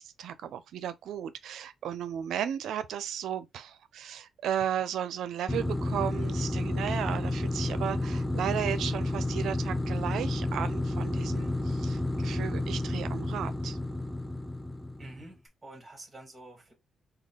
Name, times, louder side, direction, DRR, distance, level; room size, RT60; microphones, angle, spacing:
voice 1, 0.0-13.8, right 9 dB, 85° right, 0.5 m, -35 dB
sound 1, 5.5-15.3, left 1 dB, 5° left, 0.4 m, -31 dB
voice 2, 15.0-16.7, right 2 dB, 20° right, 2.0 m, -48 dB
3.7 x 2.3 x 3.4 m
cardioid pair, 95°, 0 cm